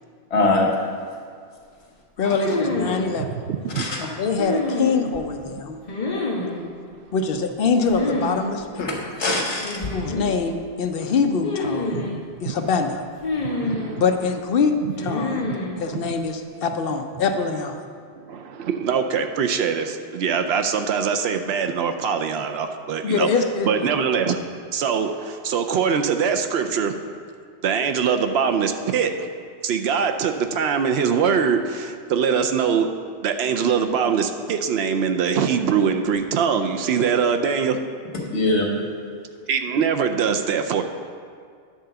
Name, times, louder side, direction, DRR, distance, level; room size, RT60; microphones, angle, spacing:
voice 1, 0.3-0.7 2.5-2.6 3.7-4.0 8.8-9.8 38.3-38.7, left 2 dB, 80° left, -1 dB, 1.7 m, -22 dB
voice 2, 2.2-3.3 4.2-5.8 7.1-8.9 9.9-12.0 12.4-13.0 14.0-15.4 15.8-17.8 23.0-23.9, left 5 dB, 60° left, 6 dB, 0.8 m, -24 dB
sound 1, 2.4-3.1 4.4-5.2 5.9-6.6 7.9-8.4 8.6-8.7 9.6-10.3 11.4-12.2 13.2-14.0 15.0-15.7, left 2 dB, 35° left, 1.6 m, -27 dB
voice 3, 3.2-3.8 5.5-5.6 10.0-10.1 11.0-11.1 11.9-12.6 13.4-14.0 14.8-15.6 15.9-16.2 18.2-23.3 23.6-24.4 24.7-27.0 27.6-29.1 29.6-32.9 33.2-37.8 39.5-40.8, right 6 dB, 70° right, 6 dB, 0.8 m, -23 dB
10.0 x 3.8 x 6.7 m, 2.2 s
omnidirectional pair, 1.2 m